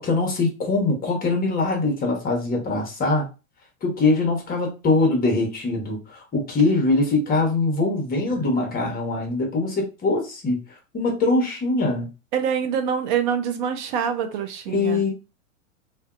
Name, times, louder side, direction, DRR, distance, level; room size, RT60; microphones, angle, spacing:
voice 1, 0.0-3.2 3.8-10.6 10.9-12.1 14.7-15.1, left 3 dB, 20° left, 1.0 m, -22 dB
voice 2, 12.3-15.0, right 7 dB, 40° right, 0.5 m, -25 dB
2.6 x 2.3 x 2.4 m
hypercardioid pair, 105°, 41 cm